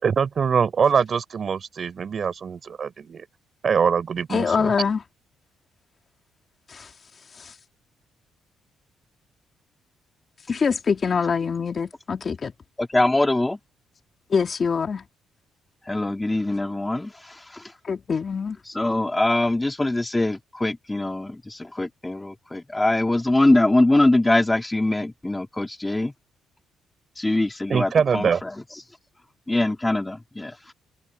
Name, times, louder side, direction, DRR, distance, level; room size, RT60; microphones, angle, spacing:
voice 1, 0.0-3.2 3.6-4.7 27.7-28.4, right 6 dB, 45° right, 4.7 m, -23 dB
voice 2, 4.3-5.0 6.7-6.9 7.4-7.5 10.5-12.5 14.3-15.0 17.8-18.6, left 5 dB, 40° left, 3.0 m, -24 dB
voice 3, 12.8-13.6 15.9-17.1 18.8-26.1 27.2-28.5 29.5-30.5, left 2 dB, 15° left, 3.6 m, -22 dB
cardioid pair, 90°, 0 cm